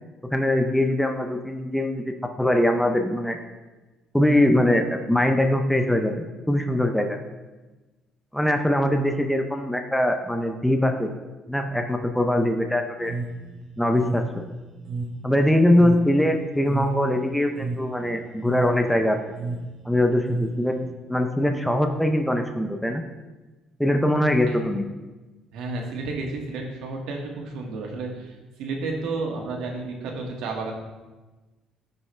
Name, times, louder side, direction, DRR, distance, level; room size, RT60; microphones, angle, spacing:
voice 1, 0.2-2.0 2.4-3.4 4.1-7.2 8.3-11.1 11.5-13.1 13.8-14.2 15.2-19.2 19.8-20.8 21.1-23.0 23.8-24.9, left 1 dB, 5° left, 5 dB, 0.5 m, -22 dB
sound 1, 13.0-20.9, right 3 dB, 45° right, 0.9 m, -33 dB
voice 2, 25.5-30.7, right 3 dB, 80° right, 0 dB, 1.8 m, -32 dB
15.0 x 5.5 x 3.2 m, 1.2 s
cardioid pair, 160°, 0 cm